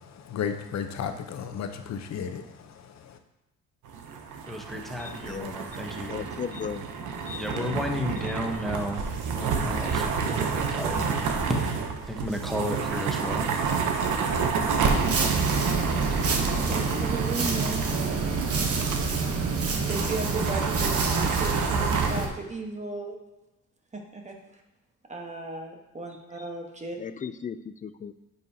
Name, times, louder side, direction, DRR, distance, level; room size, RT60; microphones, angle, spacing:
voice 1, 0.3-2.4, left 7 dB, 60° left, 8 dB, 0.8 m, -32 dB
sound 1, 3.8-19.0 19.3-19.4 19.7-22.1, right 5 dB, 85° right, 0.9 m, -30 dB
voice 2, 4.5-6.4 7.4-11.8 12.0-13.9, equal, ahead, 2 dB, 1.1 m, -33 dB
voice 3, 5.0-5.6 6.1-6.9 7.3-7.8 8.2-8.5 27.0-28.1, left 7 dB, 25° left, 13 dB, 0.4 m, -37 dB
sound 2, 14.8-22.3, right 4 dB, 50° right, 1.1 m, -26 dB
voice 4, 16.7-17.8 19.8-23.2 23.9-24.4 25.1-27.0, right 3 dB, 25° right, 2 dB, 1.3 m, -35 dB
9.1 x 5.6 x 2.8 m, 0.99 s
cardioid pair, 90°, 30 cm